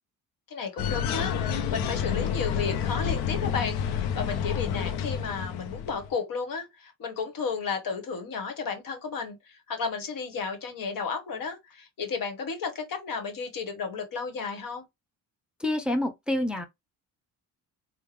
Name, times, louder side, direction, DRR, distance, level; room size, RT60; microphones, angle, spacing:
voice 1, 0.5-14.8, left 5 dB, 60° left, 1.2 m, -33 dB
sound 1, 0.8-6.1, left 8 dB, 85° left, 0.6 m, -29 dB
voice 2, 15.6-16.7, left 1 dB, ahead, 0.6 m, -27 dB
3.5 x 2.1 x 3.2 m
supercardioid pair, 70°, 37 cm